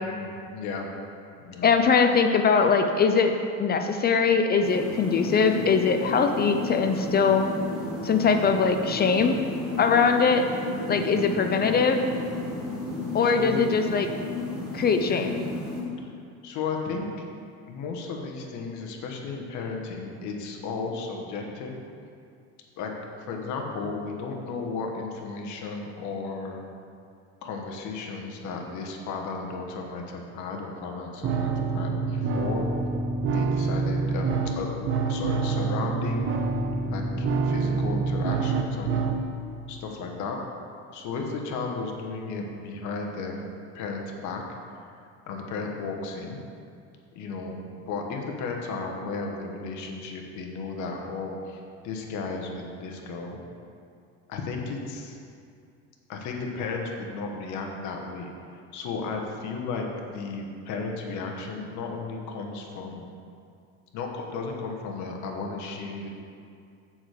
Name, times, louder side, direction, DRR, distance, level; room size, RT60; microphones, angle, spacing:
voice 1, 0.0-0.9 1.4-1.7 10.9-11.2 13.2-13.7 15.0-15.2 16.4-17.2 17.7-21.8 22.8-22.9 23.2-26.6 27.4-32.7 33.3-34.7 35.0-36.3 36.8-39.1 39.7-40.4 40.9-43.4 43.7-44.4 44.8-44.9 45.3-46.4 47.1-47.6 47.9-53.4 54.3-55.2 56.1-58.3 58.7-63.1 63.9-66.1, left 4 dB, 60° left, 1 dB, 1.2 m, -34 dB
voice 2, 1.6-3.3 3.6-7.4 8.0-9.4 9.8-10.4 10.9-12.0 13.1-14.1 14.7-15.3, left 5 dB, 30° left, 6 dB, 0.5 m, -21 dB
sound 1, 4.6-15.8, left 2 dB, 5° right, 1.8 m, -33 dB
sound 2, 31.2-39.2, right 4 dB, 40° right, 0.7 m, -26 dB
7.1 x 4.9 x 6.6 m, 2.4 s
cardioid pair, 115°, 33 cm